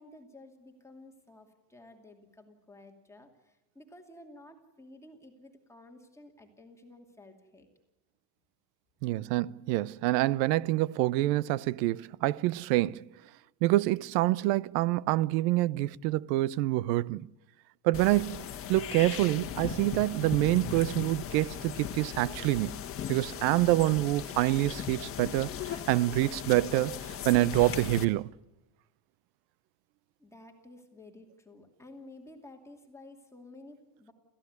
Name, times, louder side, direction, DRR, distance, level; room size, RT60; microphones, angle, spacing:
voice 1, 0.0-7.7 30.2-34.1, left 2 dB, 5° left, 2.6 m, -53 dB
voice 2, 9.0-13.1 13.6-17.3 17.8-22.8 23.1-28.3, right 17 dB, 80° right, 0.8 m, -27 dB
sound 1, 17.9-28.0, left 9 dB, 25° left, 1.6 m, -38 dB
29.0 x 15.5 x 9.6 m
cardioid pair, 160°, 48 cm